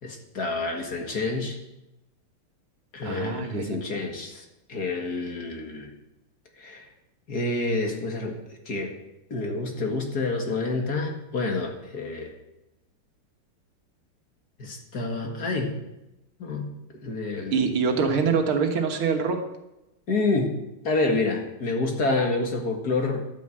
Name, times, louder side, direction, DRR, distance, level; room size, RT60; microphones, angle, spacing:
voice 1, 0.0-1.6 2.9-5.9 6.6-6.9 7.3-8.4 8.7-8.9 9.3-12.3 14.6-15.8 16.4-16.7 17.0-17.6 20.1-20.6 20.8-23.2, left 3 dB, 45° left, 3 dB, 2.2 m, -28 dB
voice 2, 3.0-4.0 17.5-19.4, right 5 dB, 75° right, 5 dB, 2.3 m, -25 dB
11.5 x 9.2 x 7.9 m, 0.93 s
omnidirectional pair, 2.4 m